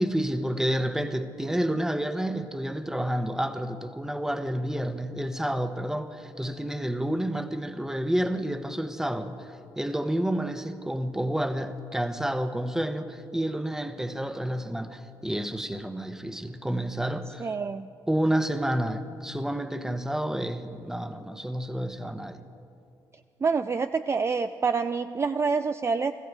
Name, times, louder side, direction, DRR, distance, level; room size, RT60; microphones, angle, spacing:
voice 1, 0.0-17.5 18.1-22.4, right 1 dB, 5° right, 1.0 m, -29 dB
voice 2, 17.4-17.9 23.4-26.1, right 5 dB, 30° right, 0.4 m, -27 dB
20.5 x 15.0 x 4.7 m
hypercardioid pair, 50°, 9 cm